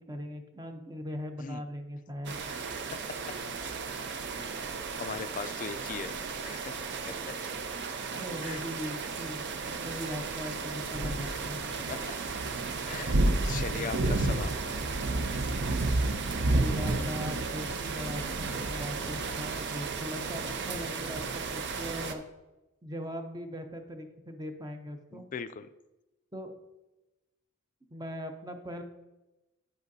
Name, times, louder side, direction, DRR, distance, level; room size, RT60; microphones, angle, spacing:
voice 1, 0.0-2.4 8.1-11.6 16.5-22.2 22.8-25.2 26.3-26.5 27.9-28.8, equal, 20° right, 6 dB, 0.7 m, -40 dB
sound 1, 2.3-22.1, right 3 dB, 55° right, 0.6 m, -32 dB
voice 2, 5.0-6.1 6.4-6.8 7.3-7.4 8.4-8.6 11.9-12.0 12.8-14.6 25.1-25.7, left 6 dB, 40° left, 13 dB, 0.3 m, -39 dB
9.3 x 7.8 x 2.7 m, 1.0 s
head